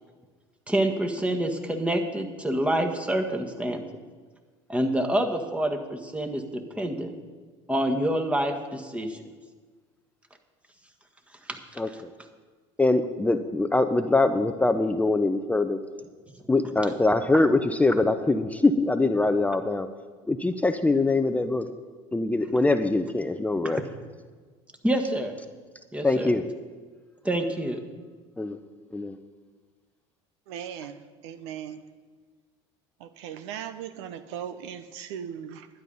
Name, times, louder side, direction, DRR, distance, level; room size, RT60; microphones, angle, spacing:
voice 1, 0.7-3.8 4.7-6.4 6.8-7.1 7.7-9.2 11.5-11.6 23.7-23.8 24.8-25.3 25.9-26.3 27.3-27.8, right 1 dB, 10° right, 4 dB, 1.6 m, -27 dB
voice 2, 11.8-12.1 12.8-15.8 16.5-19.9 20.3-21.7 22.1-23.8 26.0-26.4 28.4-28.6 28.9-29.2, left 2 dB, 10° left, 9 dB, 0.6 m, -23 dB
voice 3, 30.5-31.8 33.0-35.7, right 9 dB, 80° right, 12 dB, 0.8 m, -38 dB
11.5 x 10.0 x 5.5 m, 1.4 s
hypercardioid pair, 85°, 14 cm